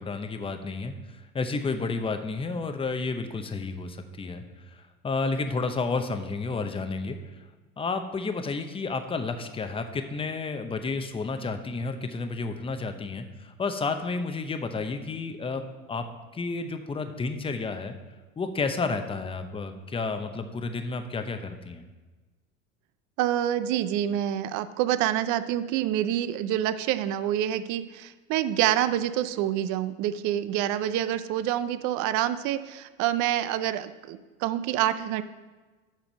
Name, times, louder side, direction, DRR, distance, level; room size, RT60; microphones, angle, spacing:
voice 1, 0.0-7.2 7.8-15.6 15.9-16.1 16.3-17.9 18.4-21.8, left 4 dB, 15° left, 7 dB, 0.8 m, -31 dB
voice 2, 23.2-35.2, right 11 dB, 45° right, 13 dB, 0.6 m, -27 dB
7.4 x 5.1 x 6.4 m, 1.3 s
hypercardioid pair, 85°, 40 cm